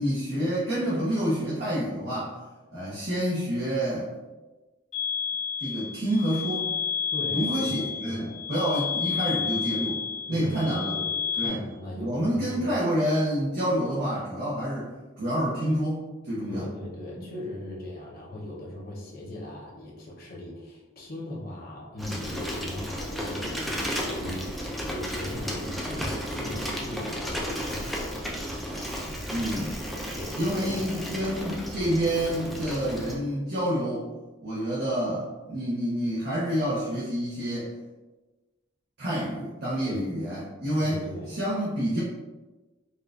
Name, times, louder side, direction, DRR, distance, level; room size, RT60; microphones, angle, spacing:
voice 1, 0.0-2.3 2.7-4.1 5.6-6.7 7.3-11.0 11.4-11.6 12.0-14.9 15.2-16.7 17.1-17.3 29.3-29.8 30.4-34.1 34.4-37.7 39.0-42.0, equal, 55° right, -8 dB, 0.7 m, -28 dB
sound 1, 4.9-11.5, left 7 dB, 85° left, 1.2 m, -31 dB
voice 2, 7.1-8.5 10.3-12.7 16.5-28.3 30.1-31.0 39.8-40.1 40.8-41.4, left 1 dB, 50° left, -4 dB, 0.7 m, -39 dB
Bicycle, 22.0-33.1, equal, ahead, 0.3 m, -33 dB
4.2 x 2.3 x 2.3 m, 1.2 s
head